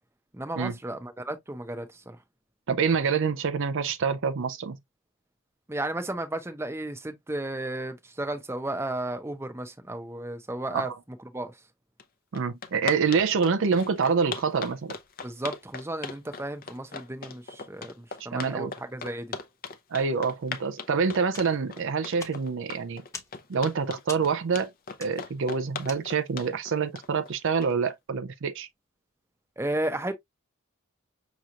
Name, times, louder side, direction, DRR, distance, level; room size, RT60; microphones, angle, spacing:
voice 1, 0.3-2.2 5.7-10.9 11.3-11.5 15.2-19.3 29.6-30.1, right 1 dB, 10° right, 0.7 m, -33 dB
voice 2, 2.7-4.8 10.7-11.0 12.3-14.9 18.3-18.7 19.9-23.0 23.5-24.7 25.0-28.7, right 5 dB, 55° right, 0.5 m, -26 dB
sound 1, 12.0-12.1 12.3-27.9, left 5 dB, 40° left, 0.7 m, -38 dB
sound 2, 21.3-26.5, left 3 dB, 15° left, 1.0 m, -46 dB
6.2 x 2.9 x 2.4 m
head